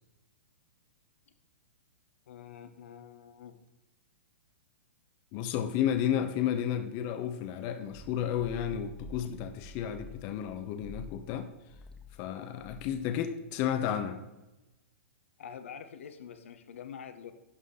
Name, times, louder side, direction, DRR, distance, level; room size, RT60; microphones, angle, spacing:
voice 1, 2.3-3.6 15.4-17.3, left 8 dB, 70° left, 9 dB, 1.0 m, -46 dB
voice 2, 5.3-11.5 12.2-14.2, left 9 dB, 40° left, 8 dB, 0.8 m, -32 dB
sound 1, 7.9-10.5 10.8-11.4 11.7-12.2 12.6-13.1, left 2 dB, 10° left, 1.3 m, -48 dB
11.0 x 6.4 x 3.8 m, 1.0 s
hypercardioid pair, 125°, 7 cm